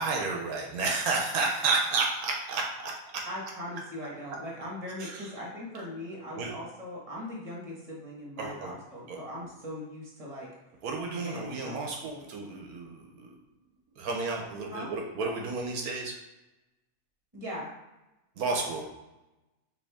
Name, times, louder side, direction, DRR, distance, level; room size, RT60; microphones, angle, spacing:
voice 1, 0.0-3.2 5.0-5.3 6.3-6.5 8.4-8.7 9.1-9.5 10.8-13.3 14.0-16.2 18.4-18.8, right 3 dB, 80° right, 1 dB, 1.2 m, -31 dB
voice 2, 3.2-10.5 11.1-11.9 14.7-14.9 17.3-17.7, left 1 dB, 25° right, -4 dB, 1.5 m, -40 dB
5.1 x 3.0 x 3.5 m, 1.0 s
omnidirectional pair, 1.5 m